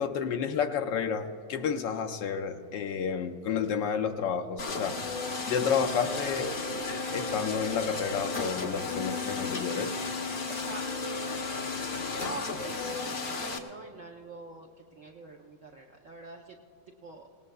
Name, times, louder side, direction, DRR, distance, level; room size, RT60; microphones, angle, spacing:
voice 1, 0.0-5.0 5.5-6.5 7.1-9.9, left 7 dB, 70° left, 5 dB, 1.2 m, -30 dB
sound 1, 4.6-13.6, left 3 dB, 50° left, 0.6 m, -34 dB
voice 2, 10.5-11.9 12.1-16.6 16.9-17.3, right 3 dB, 60° right, -1 dB, 0.8 m, -45 dB
23.5 x 18.5 x 2.3 m, 2.4 s
omnidirectional pair, 2.2 m